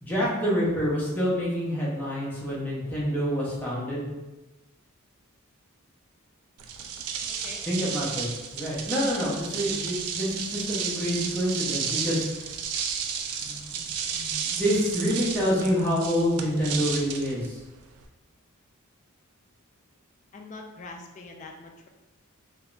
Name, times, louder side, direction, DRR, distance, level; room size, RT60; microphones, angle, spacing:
voice 1, 0.0-4.1 7.7-8.3 8.5-12.3 13.4-13.8 14.1-17.6, equal, 10° left, -7 dB, 0.7 m, -27 dB
sound 1, 6.6-18.1, right 6 dB, 85° right, 0.3 m, -33 dB
voice 2, 6.8-7.9 20.3-21.9, left 3 dB, 35° left, 2 dB, 0.3 m, -44 dB
3.4 x 2.1 x 2.4 m, 1.1 s
head